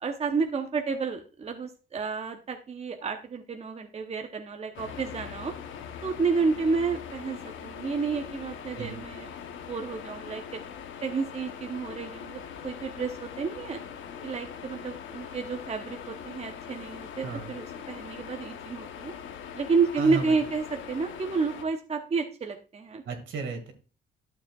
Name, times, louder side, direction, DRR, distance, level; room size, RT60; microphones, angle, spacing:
voice 1, 0.0-5.6 6.0-9.3 9.7-10.6 11.0-13.8 14.2-19.1 19.5-23.0, right 4 dB, 30° right, 5 dB, 0.8 m, -30 dB
sound 1, 4.7-21.6, left 8 dB, 75° left, 0.9 m, -42 dB
voice 2, 20.0-20.3 23.1-23.7, right 4 dB, 75° right, 5 dB, 2.0 m, -34 dB
11.5 x 7.0 x 2.3 m, 0.33 s
cardioid pair, 90°, 20 cm